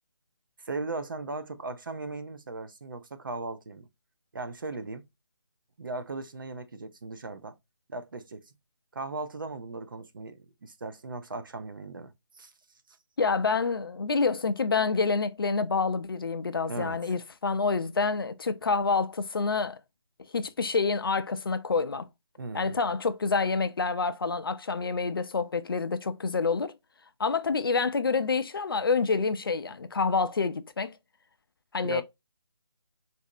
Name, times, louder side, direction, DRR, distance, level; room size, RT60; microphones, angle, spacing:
voice 1, 0.6-3.9 4.3-5.0 5.8-7.5 7.9-8.5 8.9-12.5 16.7-17.0 22.4-22.8 31.8-32.0, right 3 dB, 45° right, 0.5 m, -37 dB
voice 2, 13.2-19.8 20.3-22.1 22.5-26.7 27.2-30.9 31.7-32.0, left 4 dB, 50° left, 0.4 m, -27 dB
4.0 x 2.6 x 2.6 m
hypercardioid pair, 170°, 15 cm